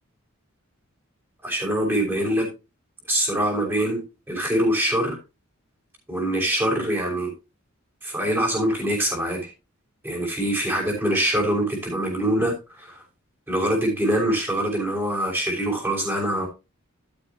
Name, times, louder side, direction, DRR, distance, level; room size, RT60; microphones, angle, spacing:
voice 1, 1.4-2.5 3.1-4.0 4.3-5.2 6.1-7.3 8.0-9.5 10.0-13.0 13.5-16.5, right 1 dB, 10° right, -1 dB, 5.8 m, -24 dB
12.5 x 8.9 x 3.0 m, 0.27 s
head